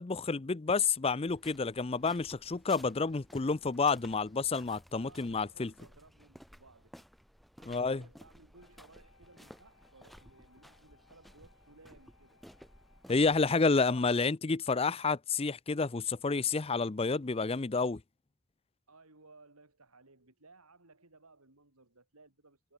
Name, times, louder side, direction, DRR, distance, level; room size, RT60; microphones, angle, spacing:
voice 1, 0.0-5.7 7.7-8.0 13.1-18.0, left 4 dB, 25° left, 0.5 m, -29 dB
sound 1, 1.2-13.5, equal, ahead, 5.0 m, -57 dB
voice 2, 4.9-6.9 7.6-12.4 18.9-22.7, right 3 dB, 90° right, 4.4 m, -60 dB
Wind instrument woodwind instrument, 8.5-13.4, left 4 dB, 75° left, 7.7 m, -67 dB
head